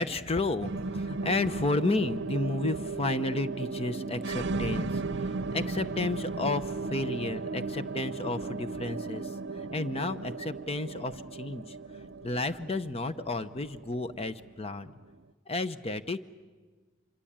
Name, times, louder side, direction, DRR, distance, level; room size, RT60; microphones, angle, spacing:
voice 1, 0.0-11.8 12.2-14.9 15.5-16.2, left 2 dB, 30° left, 11 dB, 0.8 m, -32 dB
sound 1, 0.6-15.2, right 3 dB, 60° right, 0.7 m, -36 dB
25.5 x 24.0 x 8.8 m, 1.4 s
head